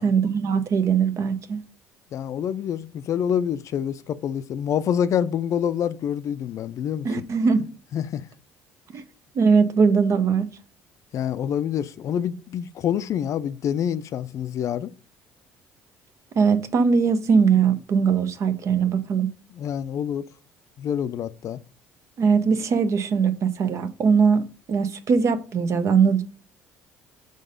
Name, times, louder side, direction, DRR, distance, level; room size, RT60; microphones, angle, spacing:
voice 1, 0.0-1.6 7.0-7.7 8.9-9.0 9.4-10.5 16.3-19.3 22.2-26.2, right 5 dB, 50° right, 0.8 m, -20 dB
voice 2, 2.1-7.2 7.9-8.3 11.1-14.9 19.5-20.3 20.8-21.6, left 9 dB, 55° left, 0.4 m, -27 dB
5.2 x 3.9 x 5.1 m
hypercardioid pair, 60°, 6 cm